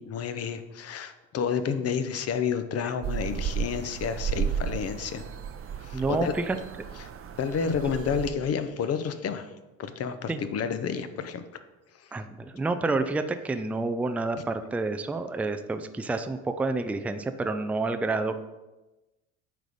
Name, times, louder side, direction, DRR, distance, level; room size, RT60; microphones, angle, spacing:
voice 1, 0.0-5.2 5.8-6.5 7.0-7.1 7.4-9.5 9.8-11.4, left 6 dB, 35° left, 10 dB, 0.8 m, -30 dB
sound 1, 3.0-8.3, right 7 dB, 35° right, 0.7 m, -33 dB
voice 2, 5.9-6.6 10.3-10.4 12.1-18.4, right 3 dB, 5° right, 9 dB, 0.4 m, -29 dB
9.1 x 3.9 x 5.0 m, 1.1 s
hypercardioid pair, 70°, 41 cm